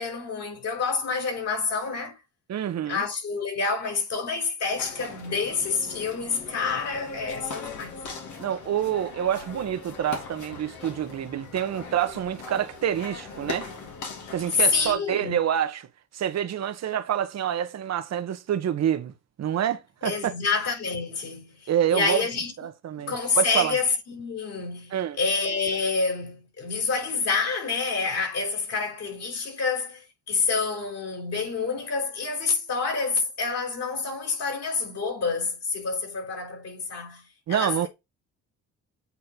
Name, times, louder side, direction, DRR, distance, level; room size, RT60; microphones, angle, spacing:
voice 1, 0.0-2.2 2.9-7.9 14.6-15.4 20.0-22.5 23.0-37.9, left 4 dB, 60° left, 5.2 m, -28 dB
voice 2, 2.5-3.1 8.4-13.7 14.3-15.9 16.1-20.3 21.7-22.2 22.6-23.7 24.9-25.2 37.5-37.9, right 10 dB, 60° right, 1.2 m, -27 dB
sound 1, 4.7-15.0, left 4 dB, 75° left, 2.3 m, -40 dB
8.5 x 3.4 x 4.5 m
cardioid pair, 90°, 30 cm